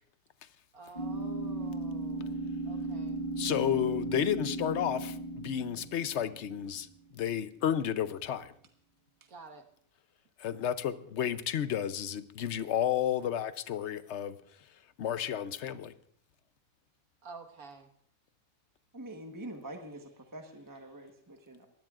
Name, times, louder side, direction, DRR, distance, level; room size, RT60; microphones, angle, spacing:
voice 1, 0.7-3.2 9.3-9.7 17.2-17.9, right 3 dB, 85° right, 3 dB, 1.9 m, -50 dB
sound 1, 1.0-6.8, right 2 dB, 30° left, 0.9 m, -36 dB
voice 2, 3.4-5.1 5.4-6.9 7.2-8.5 10.4-14.3 15.0-15.9, left 10 dB, 60° left, 13 dB, 0.9 m, -31 dB
voice 3, 18.9-21.7, right 1 dB, 15° right, 3 dB, 1.1 m, -45 dB
22.5 x 16.5 x 2.4 m, 0.63 s
omnidirectional pair, 1.5 m